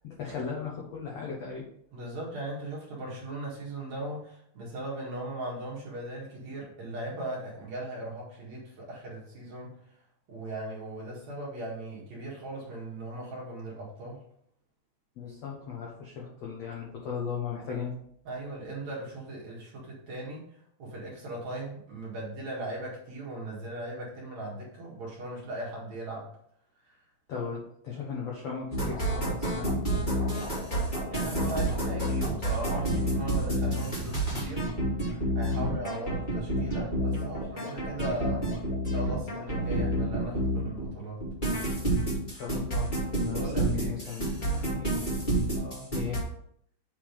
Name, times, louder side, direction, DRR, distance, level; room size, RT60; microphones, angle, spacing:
voice 1, 0.0-1.6 15.2-18.0 27.3-29.8 35.5-35.8 42.3-42.9 43.2-45.0 45.9-46.2, left 6 dB, 70° left, -3 dB, 1.5 m, -37 dB
voice 2, 1.9-9.8 10.3-14.2 18.2-26.3 26.8-27.0 31.1-34.7 35.3-38.5 38.9-41.2 43.2-44.0 45.5-45.9, right 1 dB, 55° right, -4 dB, 2.5 m, -38 dB
sound 1, 28.7-40.9 41.2-46.2, right 1 dB, 20° left, 1.4 m, -29 dB
8.2 x 3.7 x 5.1 m, 0.70 s
omnidirectional pair, 4.7 m